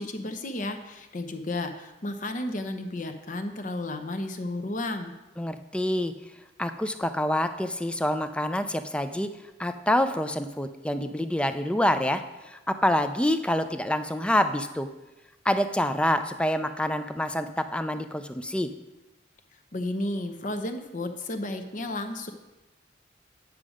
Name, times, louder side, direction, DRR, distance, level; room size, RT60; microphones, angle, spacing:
voice 1, 0.0-5.1 19.7-22.3, left 1 dB, 45° left, 6 dB, 0.8 m, -33 dB
voice 2, 5.4-6.1 6.6-9.3 9.6-14.9 15.4-18.7, left 1 dB, 5° left, 9 dB, 0.4 m, -27 dB
9.5 x 6.3 x 4.9 m, 1.0 s
head